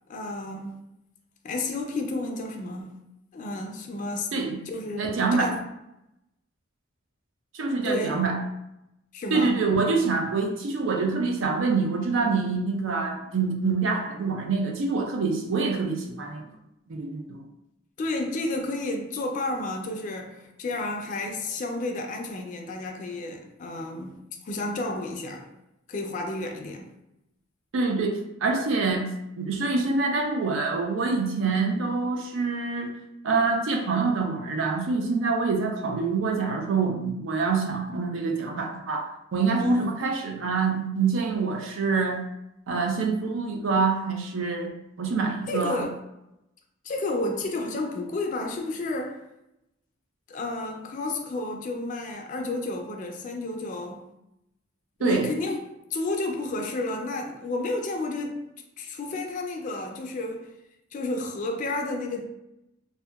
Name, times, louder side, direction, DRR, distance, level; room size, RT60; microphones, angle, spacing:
voice 1, 0.1-0.7 1.4-2.9 3.3-4.3 4.7-5.6 7.8-8.2 9.1-9.6 18.0-25.5 25.9-26.9 39.6-39.9 45.5-46.0 46.8-49.2 50.3-54.0 55.0-55.6 55.9-58.4 58.8-60.5 60.9-62.3, left 2 dB, 40° left, 0.3 m, -31 dB
voice 2, 5.0-5.5 7.5-8.4 9.3-16.5 16.9-17.4 27.7-29.1 29.4-32.9 33.2-42.2 42.7-44.7 45.0-45.9 55.0-55.3, right 4 dB, 70° right, 0.4 m, -26 dB
2.7 x 2.1 x 2.3 m
head